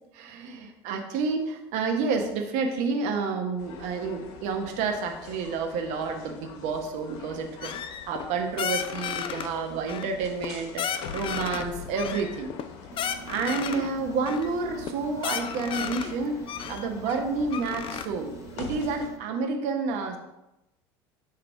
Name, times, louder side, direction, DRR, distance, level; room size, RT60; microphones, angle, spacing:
voice 1, 0.1-10.8 11.1-12.5 13.3-20.2, right 4 dB, 65° right, 4 dB, 1.1 m, -30 dB
sound 1, 3.6-19.1, left 6 dB, 65° left, 0.9 m, -44 dB
sound 2, 7.6-8.3 8.6-9.5 9.9-10.5 10.8-11.6 11.9-13.9 14.3-14.5 14.8-14.9 15.2-16.1 16.5-18.0, left 8 dB, 40° left, 0.5 m, -33 dB
sound 3, 12.9-19.2, right 9 dB, 25° right, 0.7 m, -47 dB
6.2 x 3.2 x 5.7 m, 0.91 s
hypercardioid pair, 80°, 13 cm